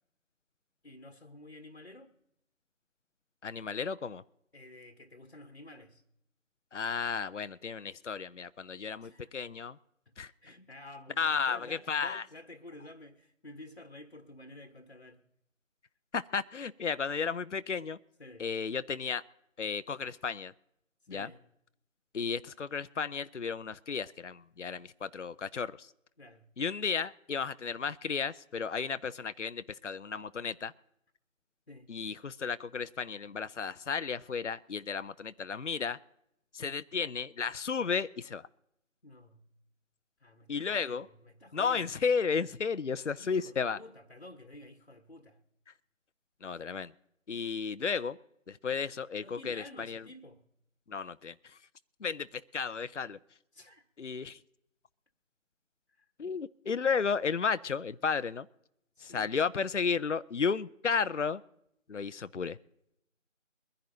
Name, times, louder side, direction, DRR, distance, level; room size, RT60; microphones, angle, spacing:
voice 1, 0.8-2.1 4.5-6.0 9.0-9.3 10.0-10.1 10.4-15.2 18.2-18.5 21.1-21.4 26.2-26.5 31.7-31.9 39.0-39.5 40.2-41.9 43.2-45.4 49.2-50.5 53.5-53.9 55.9-56.1 58.9-59.3, left 1 dB, 45° left, 1.3 m, -51 dB
voice 2, 3.4-4.2 6.7-9.8 10.2-10.3 11.2-12.2 16.1-18.0 18.4-19.2 19.6-20.5 21.1-21.3 22.1-25.9 26.6-30.7 31.9-36.0 36.5-38.5 40.5-41.1 41.5-43.8 46.4-46.9 47.3-48.2 48.5-50.0 50.9-51.6 52.0-53.2 54.0-54.4 56.2-58.5 59.0-61.4 61.9-62.6, left 5 dB, 65° left, 0.6 m, -33 dB
23.0 x 10.5 x 2.8 m
figure-of-eight pair, 165°, 39 cm